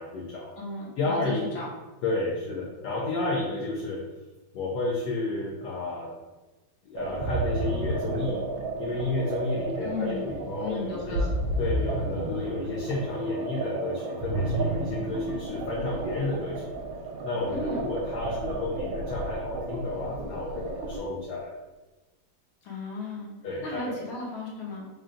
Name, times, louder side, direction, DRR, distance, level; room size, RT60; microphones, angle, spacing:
voice 1, 0.0-0.5 1.0-1.4 2.0-4.0 4.5-6.1 6.8-8.4 8.8-11.2 11.6-16.8 17.2-21.5 23.4-24.2, left 2 dB, 65° left, -4 dB, 1.1 m, -31 dB
voice 2, 0.6-1.7 9.8-10.2 10.6-11.3 17.5-17.9 22.6-23.3 23.6-24.9, left 3 dB, 85° left, -4 dB, 1.8 m, -35 dB
sound 1, 7.0-21.0, right 2 dB, 75° right, 1.3 m, -32 dB
3.9 x 2.3 x 3.7 m, 1.1 s
omnidirectional pair, 2.2 m